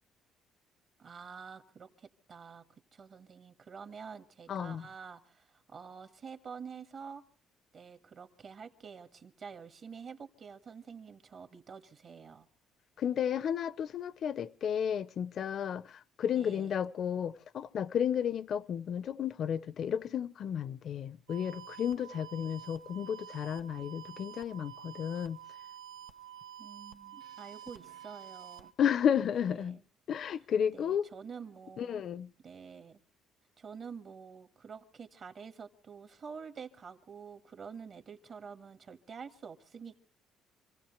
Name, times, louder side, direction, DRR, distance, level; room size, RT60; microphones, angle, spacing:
voice 1, 1.0-2.6 2.9-7.2 7.7-12.5 16.3-16.7 26.6-28.7 29.4-29.8 30.7-32.1 32.4-33.0 33.6-40.0, right 6 dB, 45° right, 1.8 m, -48 dB
voice 2, 4.5-4.9 13.0-25.4 28.8-29.8 30.1-31.1 31.8-32.3, left 8 dB, 55° left, 0.7 m, -32 dB
sound 1, 21.3-28.7, right 10 dB, 85° right, 1.0 m, -49 dB
27.0 x 16.0 x 3.3 m
cardioid pair, 115°, 0 cm